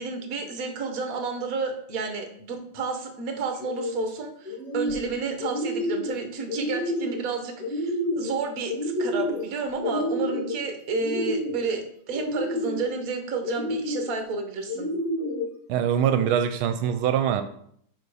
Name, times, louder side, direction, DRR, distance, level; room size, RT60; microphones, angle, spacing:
voice 1, 0.0-14.9, right 4 dB, 50° right, 5 dB, 1.3 m, -31 dB
sound 1, 3.5-4.0 4.4-5.1 5.4-6.1 6.5-7.2 7.6-8.3 8.7-9.5 9.8-10.5 10.9-11.7 12.1-12.9 13.4-14.1 14.7-15.5, left 1 dB, 45° left, 2.1 m, -29 dB
voice 2, 15.7-17.4, right 9 dB, 85° right, 9 dB, 1.4 m, -23 dB
7.5 x 4.0 x 4.8 m, 0.67 s
omnidirectional pair, 2.2 m